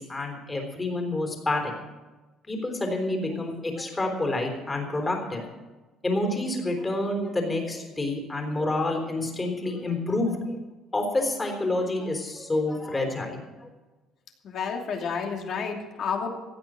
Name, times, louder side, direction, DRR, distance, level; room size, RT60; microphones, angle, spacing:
voice 1, 0.0-1.7 2.5-5.5 6.0-10.6 10.9-13.7, left 2 dB, 20° left, 3 dB, 3.6 m, -28 dB
voice 2, 14.4-16.3, left 6 dB, 50° left, 2 dB, 2.9 m, -30 dB
16.0 x 9.5 x 7.6 m, 1.2 s
cardioid pair, 125°, 0 cm